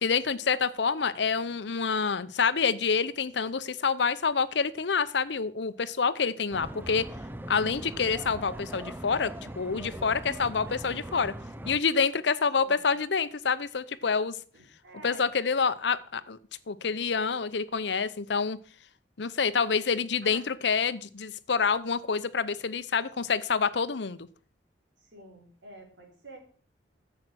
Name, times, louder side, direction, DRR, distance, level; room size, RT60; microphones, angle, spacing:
voice 1, 0.0-7.1 7.5-11.3 11.7-14.4 15.0-16.4 16.7-18.6 19.2-24.3, left 5 dB, 70° left, 14 dB, 0.7 m, -27 dB
voice 2, 1.1-1.5 12.6-12.9 14.5-15.3 20.2-20.4 25.0-26.4, right 1 dB, 85° right, 1 dB, 4.2 m, -49 dB
sound 1, 6.5-11.8, right 1 dB, 10° right, 0.6 m, -40 dB
10.0 x 7.7 x 6.2 m, 0.43 s
head